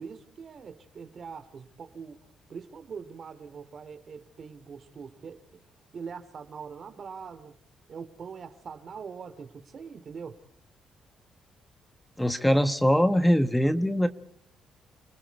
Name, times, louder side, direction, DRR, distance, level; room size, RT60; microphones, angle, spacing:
voice 1, 0.0-2.2 2.5-5.4 5.9-7.5 7.9-10.4, right 6 dB, 50° right, 2.8 m, -42 dB
voice 2, 12.2-14.1, equal, 5° left, 1.3 m, -22 dB
30.0 x 20.5 x 4.7 m
cardioid pair, 90°, 0 cm